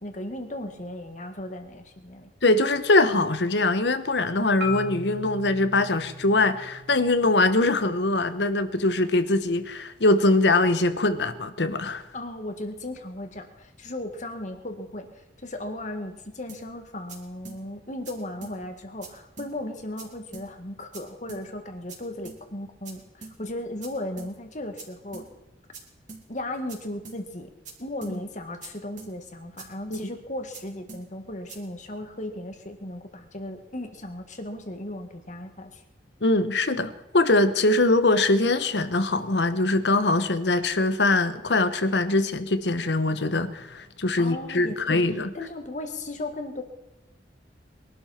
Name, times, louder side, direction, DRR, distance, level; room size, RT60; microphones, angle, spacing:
voice 1, 0.0-2.3 12.1-25.3 26.3-27.5 27.8-35.8 44.2-46.6, left 1 dB, 45° left, 2.0 m, -36 dB
voice 2, 2.4-12.0 29.9-30.0 36.2-45.3, left 2 dB, 75° left, 1.1 m, -22 dB
Marimba xylophone, 4.6-8.8, left 2 dB, 75° right, 1.9 m, -39 dB
sound 1, 16.5-16.6 17.1-17.2 17.5-17.6 18.1-18.2 18.4-18.6 19.0-19.1 19.4-19.5 20.0-20.1 20.3-20.5 20.9-21.0 21.3-21.4 21.9-22.0 22.3-22.4 22.9-23.0 23.2-23.4 23.8-23.9 24.2-24.3 24.8-24.9 25.1-25.3 25.7-25.8 26.1-26.2 26.7-26.8 27.1-27.2 27.7-27.8 28.0-28.2 28.6-28.7 29.0-29.1 29.6-29.7 29.9-30.1 30.5-30.6 30.9-31.0 31.5-31.6, right 4 dB, 45° right, 3.1 m, -42 dB
22.5 x 12.0 x 4.4 m
head